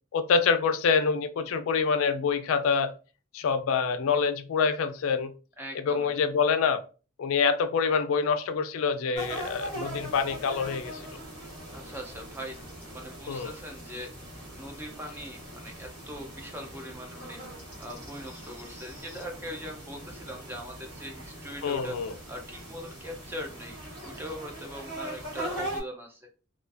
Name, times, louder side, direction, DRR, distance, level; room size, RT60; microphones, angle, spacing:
voice 1, 0.1-2.9 3.3-5.3 5.9-6.8 7.2-11.0 13.3-13.5 21.6-22.1, left 5 dB, 80° left, 0.3 m, -26 dB
voice 2, 5.6-6.1 11.7-12.6 12.9-17.4 17.8-23.8 24.0-26.3, equal, 10° right, 0.4 m, -41 dB
sound 1, 9.1-25.8, right 1 dB, 55° right, 1.3 m, -41 dB
2.4 x 2.3 x 2.4 m
head